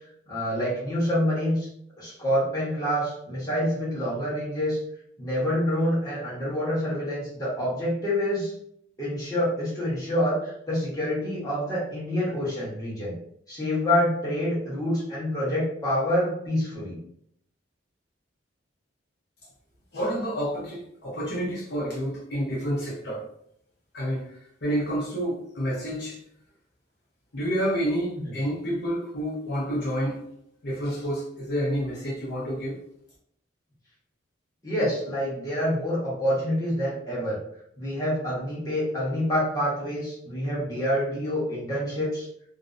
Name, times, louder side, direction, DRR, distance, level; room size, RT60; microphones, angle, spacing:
voice 1, 0.3-1.7 2.0-4.8 5.2-8.5 9.0-13.2 13.5-17.0 28.2-28.3 34.6-37.4 37.8-42.3, equal, 15° left, -9 dB, 0.9 m, -27 dB
voice 2, 19.9-23.2 23.9-24.3 24.6-26.2 27.3-30.2 30.6-32.8, equal, 55° left, -6 dB, 0.6 m, -29 dB
2.5 x 2.0 x 2.4 m, 0.70 s
head